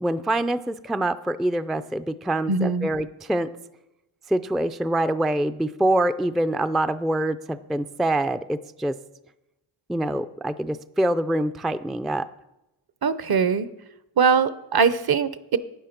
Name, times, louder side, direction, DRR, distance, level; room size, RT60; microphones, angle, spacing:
voice 1, 0.0-3.5 4.3-9.0 9.9-12.3, right 1 dB, ahead, 10 dB, 0.4 m, -25 dB
voice 2, 2.5-2.9 13.0-13.7 14.2-15.6, right 5 dB, 50° right, 14 dB, 0.8 m, -21 dB
12.0 x 9.2 x 5.9 m, 0.94 s
cardioid pair, 70°, 48 cm